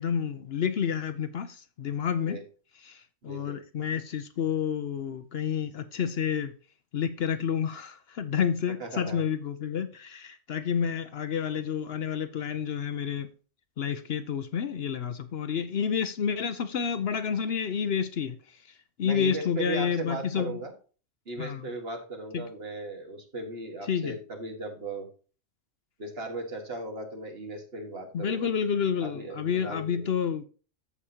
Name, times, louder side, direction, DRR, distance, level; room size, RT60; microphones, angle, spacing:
voice 1, 0.0-2.4 2.9-6.5 6.9-13.3 13.8-18.4 19.0-20.6 21.4-21.6 22.3-22.4 23.9-24.1 28.1-30.4, left 7 dB, 60° left, 0.8 m, -29 dB
voice 2, 3.2-3.6 8.8-9.2 19.0-20.7 21.3-25.1 26.0-28.5 29.0-30.1, right 2 dB, 55° right, 1.9 m, -37 dB
14.0 x 4.9 x 2.8 m
omnidirectional pair, 1.3 m